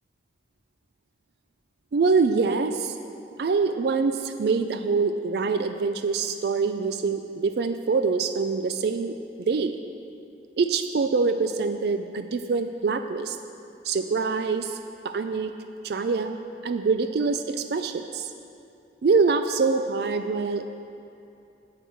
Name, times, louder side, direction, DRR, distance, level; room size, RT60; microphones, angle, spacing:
voice 1, 1.9-3.0 3.4-9.7 10.6-13.4 13.8-14.8 15.0-15.5 15.8-16.4 16.6-18.3 19.0-20.8, right 4 dB, 60° right, 8 dB, 0.4 m, -25 dB
17.0 x 5.9 x 4.6 m, 2.7 s
head